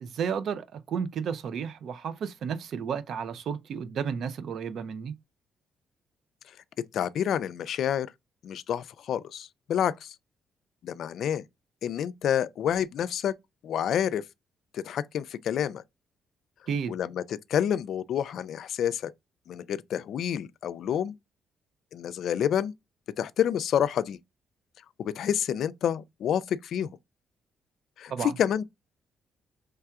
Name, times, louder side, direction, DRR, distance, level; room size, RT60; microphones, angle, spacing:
voice 1, 0.0-5.2 16.7-17.0 28.1-28.4, right 7 dB, 65° right, 0.5 m, -32 dB
voice 2, 6.9-8.1 8.4-10.1 10.8-11.4 11.8-13.3 13.6-14.2 14.7-15.8 16.9-17.2 17.5-19.1 19.5-21.1 21.9-22.7 23.2-24.2 25.0-26.9 28.0-28.6, left 9 dB, 70° left, 0.3 m, -28 dB
4.5 x 3.3 x 2.4 m
cardioid pair, 90°, 0 cm